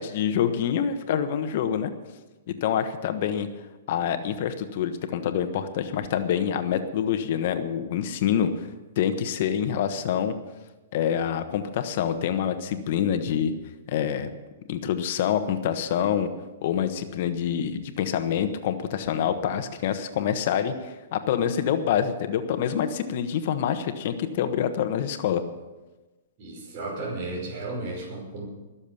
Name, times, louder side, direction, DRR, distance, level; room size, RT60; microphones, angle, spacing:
voice 1, 0.0-1.9 2.6-3.5 3.9-8.7 9.0-10.3 10.9-13.5 13.9-14.3 14.7-16.3 16.6-25.4, left 9 dB, 55° left, 9 dB, 1.2 m, -26 dB
voice 2, 26.4-28.5, right 2 dB, 45° right, -3 dB, 5.4 m, -34 dB
20.5 x 7.2 x 7.1 m, 1.2 s
hypercardioid pair, 150°, 0 cm